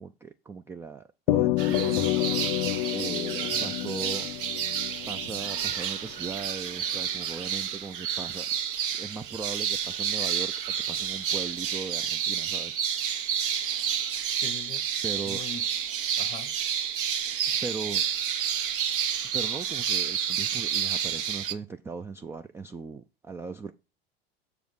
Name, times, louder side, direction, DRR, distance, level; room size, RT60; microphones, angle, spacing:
voice 1, 0.0-2.1 2.9-4.3 5.1-8.5 8.9-13.1 15.0-15.4 17.6-18.0 19.3-23.7, right 4 dB, 10° right, 0.3 m, -38 dB
sound 1, 1.3-5.9, left 18 dB, 55° left, 0.5 m, -28 dB
sound 2, 1.6-21.5, right 9 dB, 60° right, 1.0 m, -30 dB
voice 2, 14.3-16.5, left 6 dB, 20° left, 0.8 m, -43 dB
7.0 x 5.0 x 6.2 m
figure-of-eight pair, 75°, 30 cm